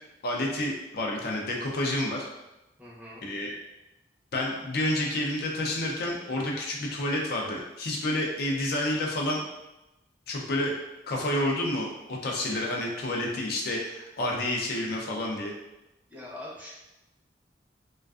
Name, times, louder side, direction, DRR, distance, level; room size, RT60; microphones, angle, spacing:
voice 1, 0.2-2.3 3.2-3.6 4.3-9.4 10.3-10.7 11.1-15.5, left 1 dB, 60° left, -1 dB, 0.4 m, -29 dB
voice 2, 2.8-3.3 16.1-16.7, left 1 dB, 10° right, -7 dB, 0.6 m, -42 dB
2.4 x 2.3 x 2.3 m, 0.96 s
head